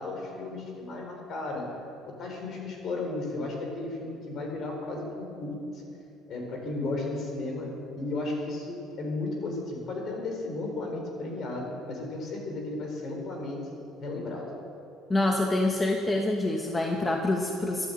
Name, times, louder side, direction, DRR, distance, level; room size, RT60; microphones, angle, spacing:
voice 1, 0.0-1.6 2.2-5.6 6.3-7.7 7.9-13.6 14.0-14.5, left 2 dB, 50° left, 1 dB, 3.8 m, -34 dB
voice 2, 15.1-17.9, left 2 dB, 15° left, 2 dB, 1.1 m, -26 dB
13.0 x 9.6 x 7.8 m, 2.6 s
cardioid pair, 115°, 0 cm